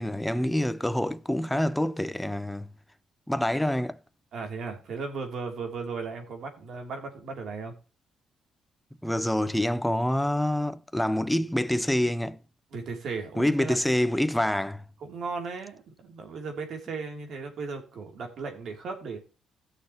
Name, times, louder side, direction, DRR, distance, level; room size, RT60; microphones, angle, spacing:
voice 1, 0.0-2.7 3.3-4.0 9.0-12.4 13.4-14.8, left 1 dB, 5° left, 0.6 m, -26 dB
voice 2, 4.3-7.7 12.7-13.8 15.0-19.2, right 4 dB, 65° right, 3.0 m, -36 dB
16.0 x 6.5 x 3.0 m
cardioid pair, 90°, 0 cm